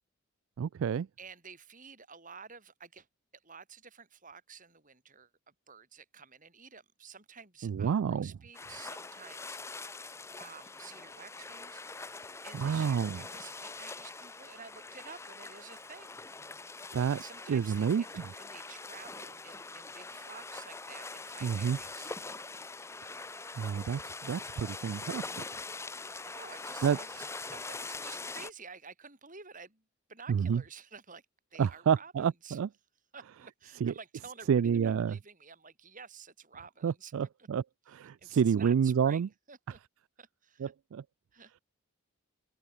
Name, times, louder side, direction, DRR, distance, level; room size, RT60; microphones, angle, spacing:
voice 1, 0.6-1.1 7.6-8.3 12.5-13.2 16.9-17.2 17.5-18.2 21.4-21.8 23.6-25.4 26.8-27.0 30.3-30.6 31.6-32.7 33.8-33.9 34.5-35.2 36.8-39.3 40.6-41.0, right 7 dB, 65° right, 0.3 m, -29 dB
voice 2, 1.2-3.1 3.3-9.9 10.4-11.8 12.4-16.2 16.8-22.1 26.2-29.8 30.1-31.2 31.5-32.6 33.1-34.5 34.8-37.5 38.2-39.8 40.2-40.7 41.3-41.6, right 5 dB, 35° right, 7.4 m, -51 dB
sound 1, 8.5-28.5, left 3 dB, 10° left, 0.6 m, -43 dB
open air
head